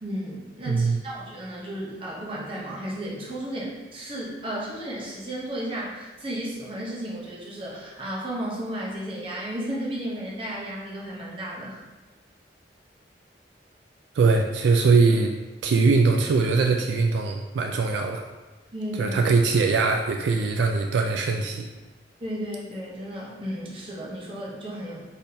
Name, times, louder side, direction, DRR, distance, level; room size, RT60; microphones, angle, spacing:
voice 1, 0.0-11.8 18.7-19.2 22.2-25.0, right 1 dB, 30° right, -5 dB, 0.8 m, -34 dB
voice 2, 0.7-1.0 14.2-15.3 15.6-18.2 19.0-21.7, right 4 dB, 75° right, 3 dB, 0.3 m, -21 dB
4.2 x 3.5 x 2.7 m, 1.2 s
head